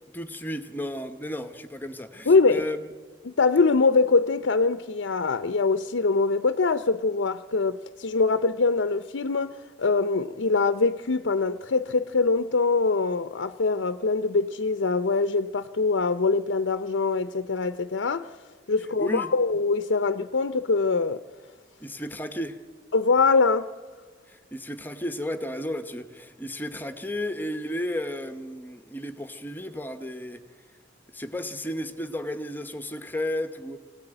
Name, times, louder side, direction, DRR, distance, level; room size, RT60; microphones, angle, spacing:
voice 1, 0.1-2.8 19.0-19.3 21.8-22.6 24.3-30.4 31.1-33.8, left 1 dB, 10° left, 1.0 m, -33 dB
voice 2, 2.3-2.6 3.3-21.2 22.9-23.7, left 4 dB, 80° left, 0.6 m, -23 dB
24.5 x 17.5 x 8.9 m
head